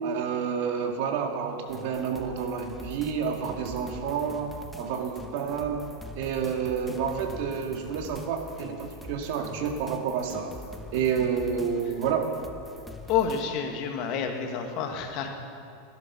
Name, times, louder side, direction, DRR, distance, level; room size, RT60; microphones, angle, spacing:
voice 1, 0.0-5.9 6.1-10.6 10.9-12.3, right 6 dB, 60° right, 3 dB, 1.9 m, -29 dB
sound 1, 1.7-13.4, left 2 dB, ahead, 1.1 m, -44 dB
voice 2, 13.1-15.3, left 7 dB, 50° left, 4 dB, 1.9 m, -29 dB
17.0 x 11.5 x 6.1 m, 2.5 s
supercardioid pair, 135°, 0 cm